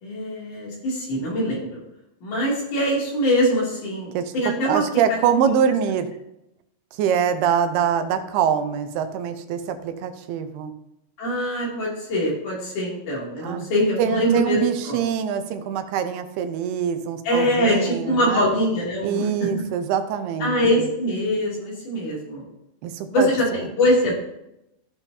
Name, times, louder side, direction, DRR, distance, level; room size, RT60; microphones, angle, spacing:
voice 1, 0.0-1.8 2.2-4.8 11.2-14.6 14.9-15.0 17.2-19.5 20.4-22.4 23.1-24.1, equal, 55° left, -4 dB, 4.0 m, -23 dB
voice 2, 4.6-6.1 6.9-10.7 13.4-13.7 14.0-18.5 19.0-20.9 22.8-23.7, right 8 dB, 85° right, 8 dB, 2.8 m, -24 dB
15.0 x 7.1 x 2.8 m, 0.85 s
omnidirectional pair, 4.5 m